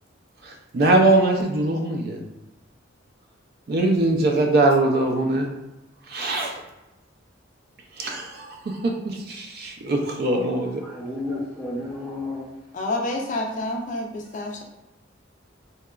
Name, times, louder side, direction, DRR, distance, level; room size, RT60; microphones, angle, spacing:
voice 1, 0.4-2.2 3.7-5.5 6.1-6.6 8.0-10.8, right 2 dB, 55° right, 2 dB, 0.4 m, -22 dB
voice 2, 10.2-12.5, left 1 dB, 10° right, -10 dB, 0.7 m, -32 dB
voice 3, 12.7-14.6, left 2 dB, 40° left, 1 dB, 0.4 m, -28 dB
2.8 x 2.3 x 2.3 m, 0.97 s
head